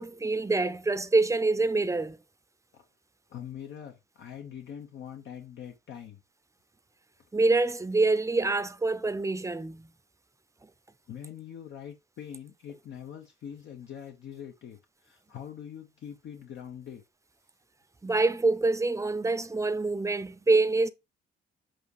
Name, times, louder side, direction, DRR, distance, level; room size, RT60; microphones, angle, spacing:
voice 1, 0.0-2.2 7.3-9.9 18.0-20.9, right 3 dB, 15° right, 0.6 m, -26 dB
voice 2, 3.3-6.2 11.1-17.0, left 9 dB, 65° left, 1.0 m, -43 dB
7.7 x 2.8 x 4.7 m
cardioid pair, 90°, 20 cm